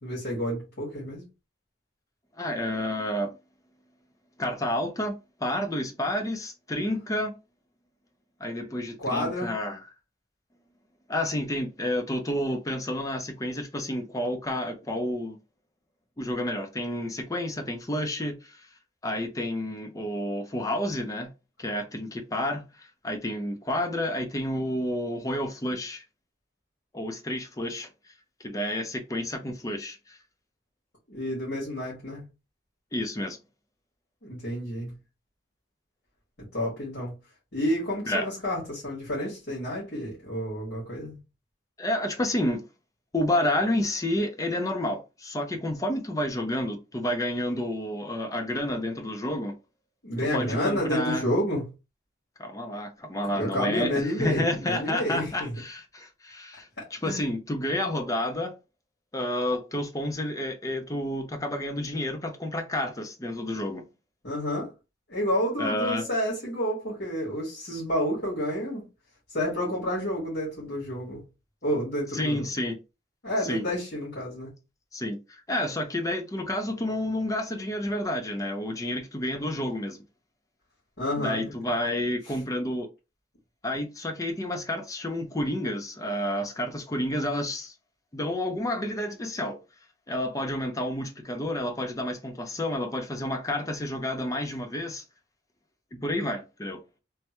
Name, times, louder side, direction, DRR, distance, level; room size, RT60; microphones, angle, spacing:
voice 1, 0.0-1.2 9.0-9.5 31.1-32.2 34.2-34.9 36.5-37.1 37.5-41.2 50.0-51.6 53.2-55.5 56.8-57.3 64.2-64.7 65.1-68.9 69.3-71.2 71.6-72.5 73.2-74.5 81.0-81.5 82.3-82.4, equal, 65° left, 1.8 m, -30 dB
voice 2, 2.4-3.4 4.4-7.3 8.4-9.8 11.1-15.4 16.2-18.7 19.0-21.3 21.6-26.0 26.9-27.9 28.4-30.2 32.9-33.4 38.1-38.2 41.8-42.6 43.1-49.5 50.3-51.2 52.4-58.5 59.1-63.8 65.6-66.0 72.1-72.8 73.4-73.6 74.9-80.0 81.2-82.9 83.6-87.7 88.1-89.6 90.1-95.0 95.9-96.8, left 1 dB, 20° left, 0.5 m, -30 dB
3.3 x 2.2 x 2.9 m
head